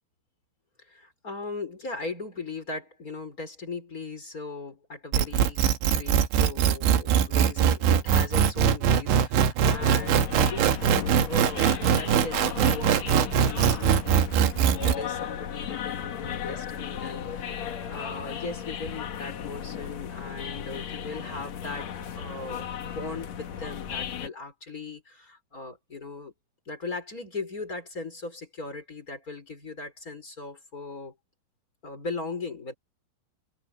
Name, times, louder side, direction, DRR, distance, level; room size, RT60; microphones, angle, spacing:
voice 1, 0.8-11.7 12.0-21.9 22.2-26.3 26.7-31.1 31.8-32.7, left 3 dB, 20° left, 4.2 m, -38 dB
sound 1, 5.1-15.0, right 8 dB, 70° right, 3.7 m, -22 dB
sound 2, 9.6-24.3, left 8 dB, 80° left, 1.5 m, -35 dB
omnidirectional pair, 5.9 m